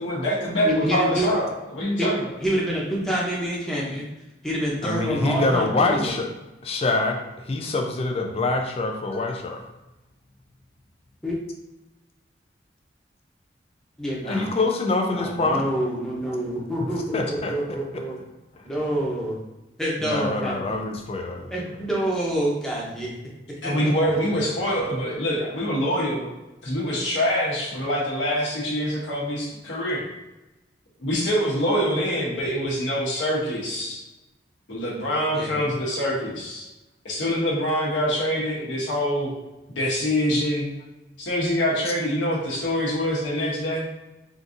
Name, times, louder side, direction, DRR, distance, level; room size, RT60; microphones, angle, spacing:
voice 1, 0.0-2.3 23.6-26.3 26.6-30.0 31.0-34.0 34.7-36.7 37.0-39.3 39.7-40.7 41.2-43.8, equal, 90° left, -5 dB, 0.9 m, -25 dB
voice 2, 0.6-1.3 2.0-2.1 2.4-4.1 4.4-6.2 11.2-11.4 14.0-14.5 15.2-18.2 18.6-19.4 19.8-20.8 21.5-23.1 23.6-23.7 35.3-35.6, equal, 5° left, -5 dB, 0.7 m, -27 dB
voice 3, 4.8-6.3 6.6-9.6 14.2-15.6 17.1-17.5 17.9-18.0 20.0-21.5, left 2 dB, 30° left, 3 dB, 0.4 m, -25 dB
3.8 x 2.6 x 2.5 m, 1.0 s
head